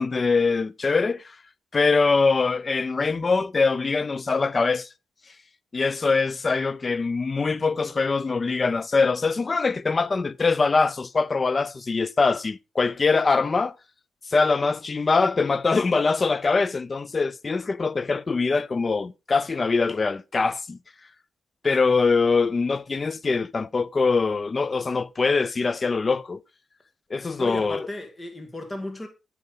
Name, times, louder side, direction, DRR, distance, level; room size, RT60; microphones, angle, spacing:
voice 1, 0.0-1.3 1.7-4.9 5.7-13.7 14.3-20.8 21.6-26.4 27.1-27.9, left 4 dB, 40° left, 0.5 m, -23 dB
voice 2, 27.3-29.1, left 1 dB, 25° left, 2.1 m, -35 dB
8.7 x 6.1 x 3.8 m
cardioid pair, 70°, 0 cm